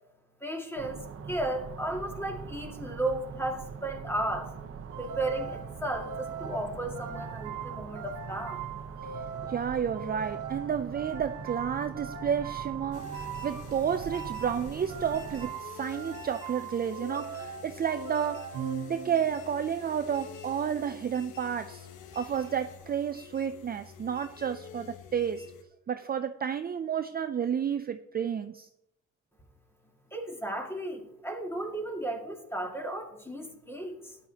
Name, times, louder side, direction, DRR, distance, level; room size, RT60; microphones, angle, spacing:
voice 1, 0.4-1.0 1.3-4.5 5.0-8.7 30.1-34.2, right 1 dB, 10° left, 1 dB, 2.0 m, -34 dB
sound 1, 0.8-15.5, right 6 dB, 50° right, 0.9 m, -42 dB
sound 2, 4.9-19.5, right 6 dB, 85° right, 1.2 m, -40 dB
voice 2, 9.5-18.5 18.9-21.9 22.1-25.5 25.9-28.7, right 8 dB, 30° right, 9 dB, 0.4 m, -31 dB
sound 3, 12.9-25.6, left 8 dB, 80° left, 1.0 m, -48 dB
13.0 x 9.9 x 2.9 m, 0.83 s
cardioid pair, 90°, 30 cm